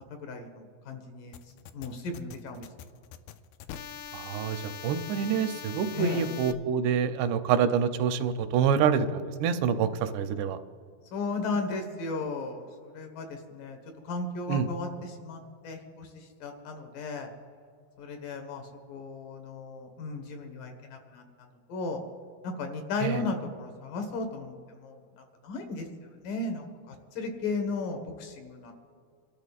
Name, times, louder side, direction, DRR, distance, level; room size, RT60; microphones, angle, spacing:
voice 1, 0.1-1.4 1.7-2.7 5.9-6.2 11.1-13.8 14.0-17.3 18.0-22.0 22.4-28.7, left 3 dB, 65° left, 5 dB, 2.6 m, -35 dB
sound 1, 1.3-6.5, left 8 dB, 85° left, 2.0 m, -43 dB
voice 2, 4.1-10.6 14.5-14.7 23.0-23.2, right 7 dB, 85° right, 9 dB, 2.8 m, -27 dB
28.5 x 12.5 x 2.4 m, 2.2 s
omnidirectional pair, 4.7 m